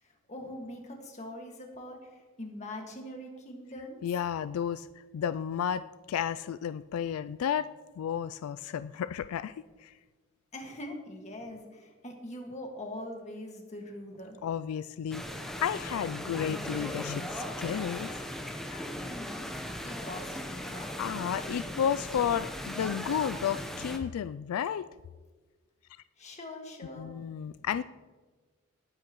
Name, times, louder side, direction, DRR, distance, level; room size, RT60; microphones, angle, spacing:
voice 1, 0.0-4.0 10.5-14.4 19.0-19.4 19.8-21.1 26.2-27.7, left 1 dB, 30° left, 2 dB, 1.8 m, -43 dB
voice 2, 4.0-7.7 8.0-9.5 9.8-9.9 14.4-18.1 18.7-18.9 21.0-24.9 27.0-27.8, left 8 dB, 85° left, 14 dB, 0.3 m, -32 dB
sound 1, 15.1-24.0, equal, ahead, 0.9 m, -38 dB
18.5 x 9.7 x 3.1 m, 1.3 s
head